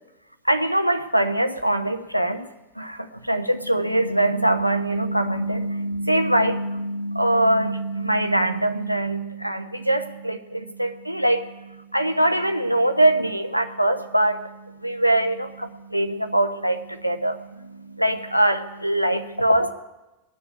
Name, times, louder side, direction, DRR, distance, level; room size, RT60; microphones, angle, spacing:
voice 1, 0.5-2.5 2.8-14.5 14.8-19.7, right 1 dB, 90° right, 7 dB, 0.9 m, -23 dB
19.0 x 7.0 x 9.4 m, 1.0 s
figure-of-eight pair, 90°, 0 cm